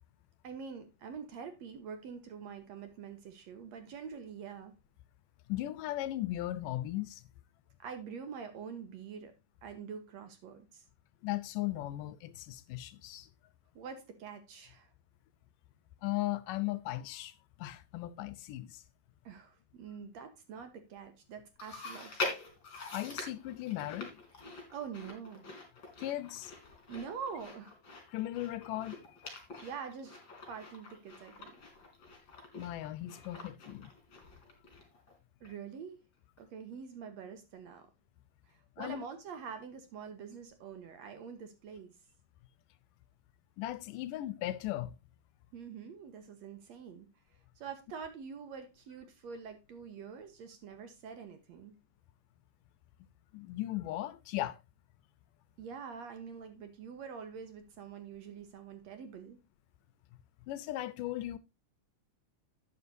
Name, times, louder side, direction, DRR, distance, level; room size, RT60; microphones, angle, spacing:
voice 1, 0.4-4.7 7.8-9.3 9.6-10.8 13.8-14.9 19.2-22.3 24.7-25.4 26.9-27.7 29.6-30.2 30.5-31.5 35.4-36.0 36.4-37.9 38.5-41.9 45.5-47.1 47.6-51.7 55.6-59.4, right 6 dB, 60° right, 2.1 m, -45 dB
voice 2, 5.5-7.2 11.2-13.3 16.0-18.8 22.9-24.1 26.0-26.5 28.1-29.0 32.6-33.9 38.8-39.0 43.6-44.9 53.3-54.6 60.5-61.4, left 15 dB, 80° left, 2.3 m, -37 dB
Chewing mastication, 21.6-35.1 35.4-35.5 36.4-36.5, left 3 dB, 35° left, 3.7 m, -45 dB
12.0 x 8.9 x 2.7 m
omnidirectional pair, 3.9 m